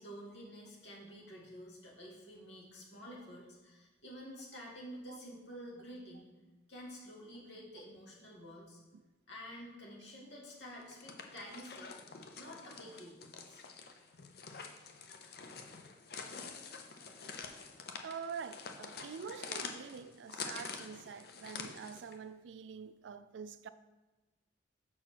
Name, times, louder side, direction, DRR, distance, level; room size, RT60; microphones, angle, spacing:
voice 1, 0.0-6.3 6.7-8.8 9.3-11.9 12.3-13.7, equal, 70° left, 2.0 m, -50 dB
sound 1, 10.8-22.2, left 5 dB, 55° left, 0.7 m, -47 dB
voice 2, 18.0-23.7, right 6 dB, 80° right, 0.4 m, -46 dB
6.2 x 4.4 x 6.0 m
head